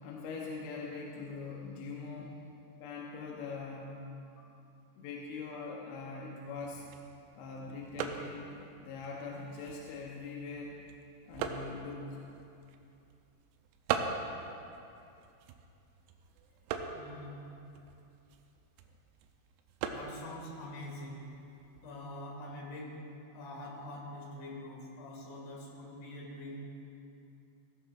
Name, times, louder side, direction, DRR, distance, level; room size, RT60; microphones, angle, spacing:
voice 1, 0.0-2.4 2.8-4.0 5.0-6.8 7.4-8.5 8.8-10.8 11.3-12.2, left 4 dB, 80° left, -2 dB, 2.5 m, -42 dB
sound 1, 6.5-22.0, right 6 dB, 85° right, 3.4 m, -43 dB
voice 2, 16.9-17.4 19.8-21.2 21.8-23.0 23.3-26.6, left 1 dB, 60° left, -3 dB, 3.6 m, -45 dB
15.5 x 13.5 x 2.5 m, 2.7 s
omnidirectional pair, 5.9 m